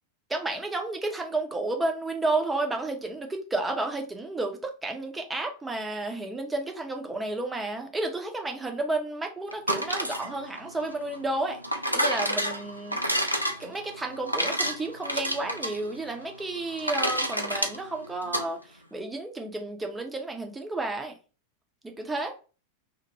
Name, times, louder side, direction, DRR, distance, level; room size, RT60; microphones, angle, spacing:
voice 1, 0.3-11.6 11.9-13.2 13.6-21.1 21.8-22.3, right 2 dB, 10° right, 0.6 m, -31 dB
sound 1, 9.5-18.5, equal, 90° left, 0.4 m, -30 dB
2.7 x 2.1 x 3.1 m
figure-of-eight pair, 90°, 0 cm